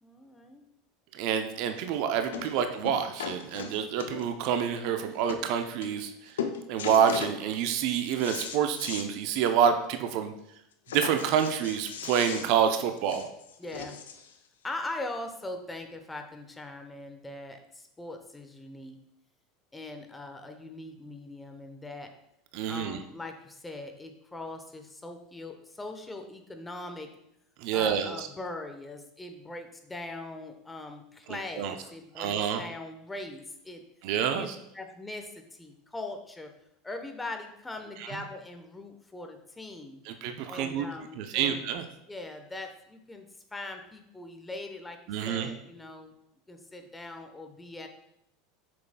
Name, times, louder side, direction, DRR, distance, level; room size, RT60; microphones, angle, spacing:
voice 1, 0.0-0.6 2.5-2.6 13.6-14.0 14.6-19.0 19.7-22.1 22.7-27.1 27.7-33.8 34.3-34.5 34.7-36.5 36.8-40.0 40.4-41.6 42.1-45.0 45.2-46.1 46.5-47.9, left 2 dB, 15° left, 5 dB, 0.9 m, -41 dB
voice 2, 1.1-6.1 6.7-10.3 10.9-13.3 22.5-23.0 27.6-28.3 31.6-31.7 32.2-32.6 34.0-34.5 40.1-40.9 41.2-41.8 45.1-45.5, right 8 dB, 60° right, 8 dB, 0.5 m, -27 dB
sound 1, 1.6-1.7 2.3-2.6 2.8-4.5 5.0-5.1 5.3-5.5 5.8-6.1 6.4-7.4 7.8-9.1 9.5-9.6 9.9-10.0 10.9-14.3 15.2-15.3, left 7 dB, 75° left, 0.5 m, -38 dB
7.4 x 6.0 x 2.2 m, 0.79 s
hypercardioid pair, 80°, 0 cm